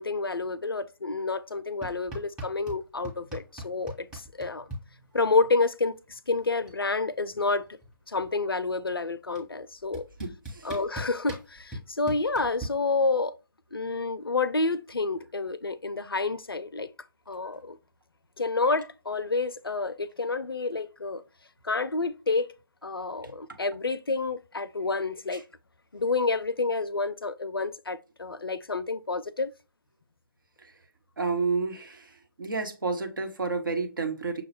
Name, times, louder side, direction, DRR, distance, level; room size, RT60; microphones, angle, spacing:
voice 1, 0.0-4.7 5.1-7.7 8.1-10.1 10.6-13.3 13.7-16.9 17.3-17.8 18.4-21.2 21.6-22.5 22.8-25.4 25.9-29.5, left 3 dB, 80° left, 0.5 m, -29 dB
sound 1, 1.8-2.8 3.0-4.8 6.1-6.2 6.4-6.8 7.1-8.5 9.4-9.5 9.9-12.7, right 1 dB, 5° right, 1.0 m, -39 dB
voice 2, 10.2-10.7 31.2-32.1 32.4-34.4, right 4 dB, 65° right, 1.1 m, -30 dB
6.3 x 2.4 x 3.2 m
figure-of-eight pair, 140°, 12 cm